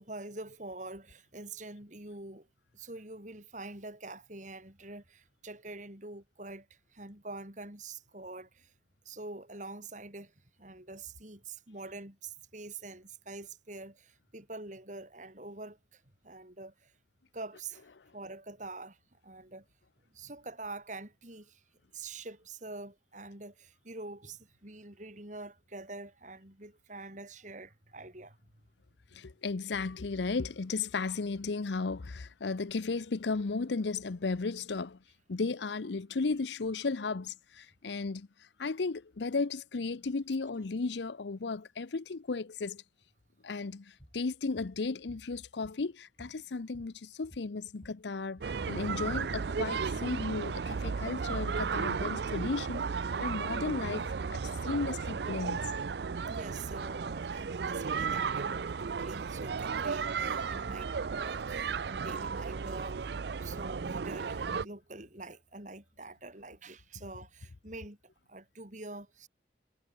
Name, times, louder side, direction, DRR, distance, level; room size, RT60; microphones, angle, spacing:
voice 1, 0.0-2.5 2.7-8.7 9.0-16.9 17.3-17.8 18.1-19.6 20.1-21.6 21.9-28.4 56.3-63.1 63.4-68.0 68.3-69.3, right 2 dB, 45° right, 4.8 m, -45 dB
voice 2, 29.1-35.0 35.3-38.3 38.6-42.8 43.4-52.8 53.2-55.6, left 4 dB, 80° left, 0.7 m, -35 dB
sound 1, 44.0-44.2 44.6-44.8 45.1-45.9 46.2-48.0 48.3-48.6 48.8-49.0 49.5-49.7 50.0-51.7, equal, 30° left, 6.3 m, -55 dB
sound 2, 48.4-64.6, right 5 dB, 65° right, 0.5 m, -34 dB
head